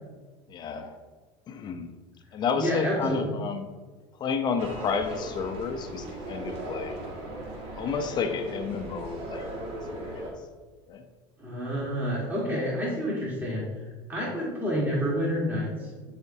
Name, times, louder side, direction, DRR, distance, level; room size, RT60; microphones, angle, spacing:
voice 1, 0.5-1.0 1.5-1.9 2.3-3.7 4.2-7.0 7.8-9.5 10.0-10.3 10.9-11.0, left 6 dB, 35° left, 6 dB, 0.6 m, -31 dB
voice 2, 2.5-3.3 11.4-13.6 14.1-16.1, equal, 15° right, -5 dB, 1.8 m, -29 dB
sound 1, 4.6-10.3, right 1 dB, 50° right, 1.7 m, -38 dB
10.5 x 4.3 x 2.7 m, 1.4 s
supercardioid pair, 115°, 13 cm